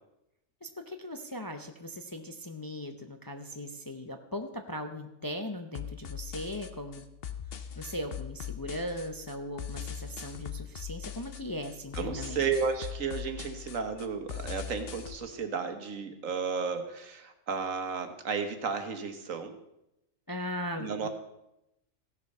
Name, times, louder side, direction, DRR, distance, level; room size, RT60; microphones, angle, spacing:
voice 1, 0.6-7.1 7.8-12.4 20.3-21.1, left 1 dB, 25° left, 5 dB, 0.5 m, -39 dB
sound 1, 5.7-15.2, left 9 dB, 55° left, 0.9 m, -41 dB
voice 2, 11.9-19.5 20.8-21.1, right 5 dB, 85° right, 7 dB, 1.6 m, -33 dB
15.5 x 6.7 x 5.4 m, 0.86 s
omnidirectional pair, 1.3 m